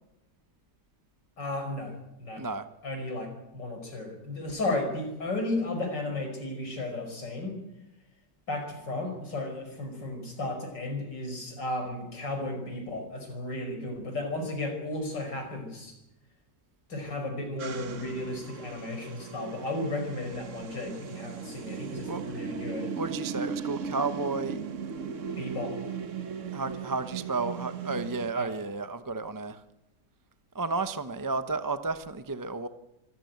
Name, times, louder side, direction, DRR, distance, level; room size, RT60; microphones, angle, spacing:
voice 1, 1.4-2.5 2.8-7.6 8.5-15.9 16.9-22.9 25.4-25.7 28.3-28.5, left 2 dB, 85° left, 4 dB, 5.7 m, -34 dB
sound 1, 17.6-28.3, right 6 dB, 50° right, 1.3 m, -37 dB
voice 2, 23.0-24.6 26.5-29.6 30.5-32.7, right 3 dB, 20° right, 11 dB, 0.6 m, -32 dB
25.0 x 14.0 x 9.4 m, 0.91 s
omnidirectional pair, 1.9 m